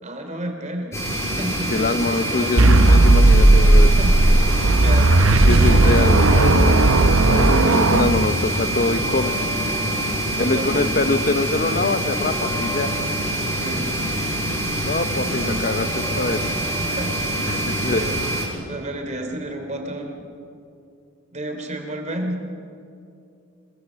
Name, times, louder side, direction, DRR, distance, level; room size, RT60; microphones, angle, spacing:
voice 1, 0.0-2.8 4.0-5.5 7.2-8.1 10.3-11.2 13.5-13.9 14.5-14.8 15.4-15.7 16.6-17.2 17.9-18.4 18.7-20.3 21.3-22.5, right 1 dB, 35° right, 4 dB, 3.1 m, -32 dB
sound 1, 0.9-18.5, right 1 dB, 15° left, 6.7 m, -25 dB
voice 2, 1.7-3.9 5.4-9.4 10.4-12.9 14.8-16.5 17.5-18.0, left 3 dB, 40° left, 11 dB, 0.7 m, -24 dB
sound 2, 2.6-8.7, right 2 dB, 70° right, 0.9 m, -15 dB
27.5 x 21.0 x 7.5 m, 2.6 s
head